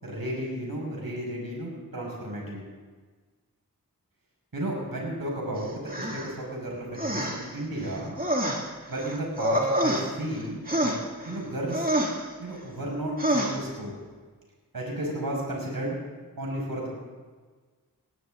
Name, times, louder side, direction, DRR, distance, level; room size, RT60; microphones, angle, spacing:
voice 1, 0.0-2.6 4.5-8.2 8.9-10.9 11.3-11.9 12.4-13.9 14.7-16.0 16.4-16.9, right 1 dB, 70° right, -2 dB, 6.0 m, -33 dB
sound 1, 5.9-6.3 7.0-7.5 7.8-10.4 10.7-11.4 11.7-12.2 13.2-13.6, right 1 dB, 25° right, 2.6 m, -27 dB
18.5 x 18.5 x 3.9 m, 1.4 s
wide cardioid pair, 50°, 36 cm